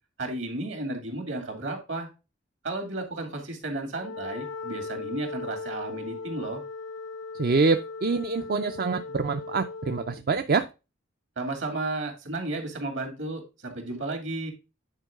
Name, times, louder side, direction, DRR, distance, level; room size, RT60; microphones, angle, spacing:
voice 1, 0.2-2.1 2.6-6.6 11.4-14.5, right 2 dB, 70° right, 4 dB, 2.6 m, -33 dB
Wind instrument woodwind instrument, 3.9-10.2, left 4 dB, 80° left, 0.4 m, -38 dB
voice 2, 7.4-10.7, right 4 dB, 50° right, 8 dB, 0.5 m, -25 dB
9.3 x 4.6 x 3.6 m, 0.28 s
head